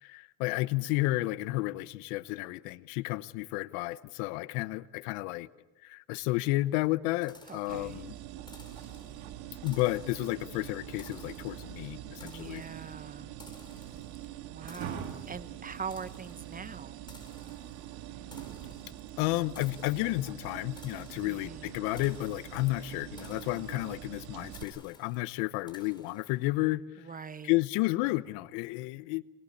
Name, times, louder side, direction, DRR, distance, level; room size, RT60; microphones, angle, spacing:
voice 1, 0.0-5.5 5.8-8.1 9.6-12.6 19.2-27.0 27.4-29.2, left 19 dB, 80° left, 17 dB, 1.0 m, -32 dB
sound 1, 7.2-26.6, left 2 dB, 10° left, 4.9 m, -57 dB
voice 2, 7.5-8.0 12.2-13.3 14.4-17.1 21.2-21.7 27.0-27.5, right 6 dB, 25° right, 14 dB, 1.1 m, -43 dB
sound 2, 7.7-24.6, right 11 dB, 75° right, 2.4 m, -44 dB
24.0 x 21.5 x 8.6 m, 1.1 s
supercardioid pair, 90°, 36 cm